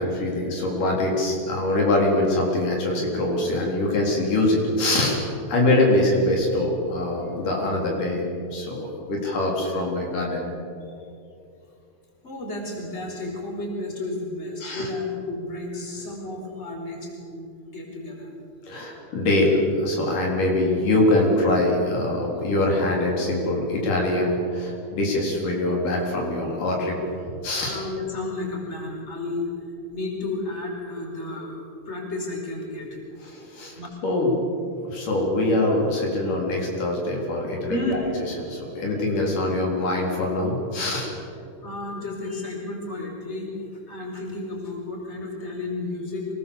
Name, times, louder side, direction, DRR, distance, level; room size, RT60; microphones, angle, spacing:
voice 1, 0.0-5.2 5.5-10.5 14.6-14.9 18.6-27.0 27.4-27.8 33.2-34.4 34.8-38.1 38.4-41.1, left 1 dB, 80° left, -1 dB, 5.5 m, -23 dB
voice 2, 12.2-18.3 19.0-19.1 27.6-32.9 33.3-33.4 33.8-33.9 36.5-36.6 37.3-37.4 37.7-37.9 41.6-43.5 43.9-46.3, left 2 dB, 20° left, 0 dB, 4.6 m, -32 dB
26.0 x 19.0 x 7.1 m, 2.5 s
omnidirectional pair, 3.7 m